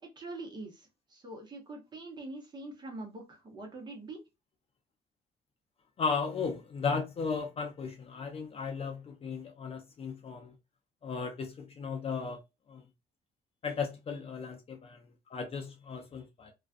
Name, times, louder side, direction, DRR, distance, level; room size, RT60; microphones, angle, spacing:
voice 1, 0.0-4.2, right 2 dB, 25° right, 0.9 m, -44 dB
voice 2, 6.0-10.5 11.0-12.4 12.7-12.8 13.6-16.5, left 5 dB, 35° left, 0.6 m, -35 dB
2.4 x 2.2 x 2.4 m
cardioid pair, 110°, 17 cm